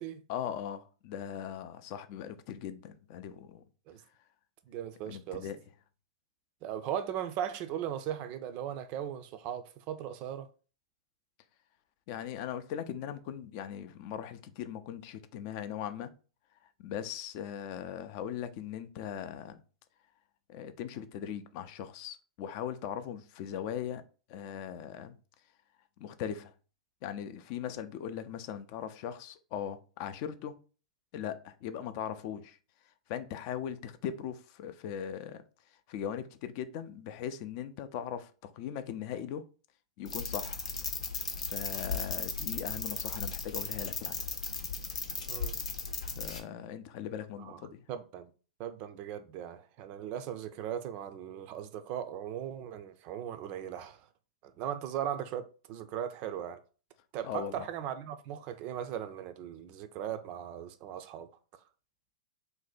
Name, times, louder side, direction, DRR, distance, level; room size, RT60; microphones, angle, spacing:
voice 1, 0.3-3.6 5.1-5.6 12.1-16.1 16.8-19.6 20.5-24.0 24.3-25.2 26.0-26.5 27.0-30.5 31.1-32.6 33.1-35.4 35.7-39.4 40.0-40.6 41.4-44.2 46.2-47.8 57.2-57.7, left 9 dB, 45° left, 0.4 m, -39 dB
voice 2, 4.7-5.5 6.6-10.5 45.3-45.6 47.4-47.6 47.9-48.3 48.6-54.1 54.4-56.6 57.1-61.3, right 10 dB, 40° right, 0.4 m, -38 dB
sound 1, 40.0-46.4, left 5 dB, 80° left, 0.7 m, -36 dB
2.6 x 2.1 x 4.0 m
hypercardioid pair, 105°, 4 cm